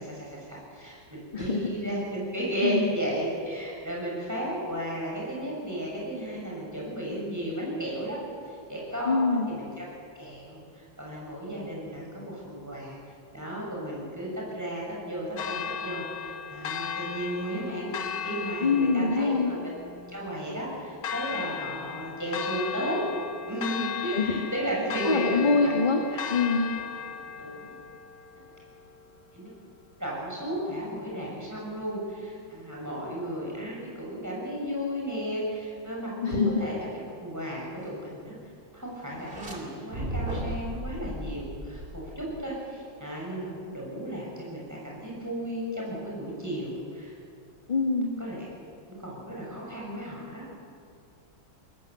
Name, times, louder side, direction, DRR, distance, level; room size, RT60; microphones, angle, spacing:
voice 1, 0.0-8.2 8.5-9.8 10.1-13.0 13.3-19.7 20.1-23.0 23.5-25.8 26.1-26.2 27.4-27.7 29.3-29.5 30.0-36.9 37.2-38.4 38.7-47.1 48.2-48.5 48.9-50.4, equal, 10° right, -4 dB, 6.8 m, -34 dB
voice 2, 9.0-9.5 18.6-19.5 24.1-24.3 25.0-26.0 26.3-26.7 36.2-36.5 47.7-48.1, left 4 dB, 25° left, 2 dB, 1.5 m, -24 dB
Church bell, 15.4-29.4, left 7 dB, 55° left, 1.4 m, -37 dB
sound 1, 39.1-39.6 39.9-42.5, right 1 dB, 30° right, 2.9 m, -35 dB
21.5 x 19.0 x 7.9 m, 2.4 s
omnidirectional pair, 2.0 m